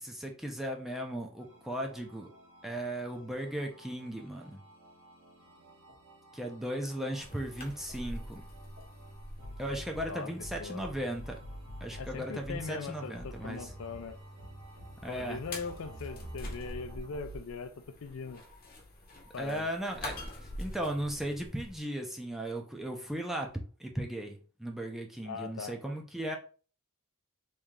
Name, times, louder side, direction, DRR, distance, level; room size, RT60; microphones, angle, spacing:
voice 1, 0.0-2.3 2.6-4.6 6.3-8.4 9.6-11.4 11.8-13.7 15.0-15.4 19.4-26.4, right 1 dB, ahead, 0.5 m, -37 dB
sound 1, 1.4-17.4, equal, 70° right, 1.4 m, -50 dB
sound 2, 7.2-21.8, left 1 dB, 40° left, 0.9 m, -46 dB
voice 2, 10.1-10.8 12.0-14.2 15.1-17.7 18.0-18.4 19.3-19.7 25.2-25.8, left 5 dB, 65° left, 0.4 m, -40 dB
3.1 x 2.7 x 3.6 m
head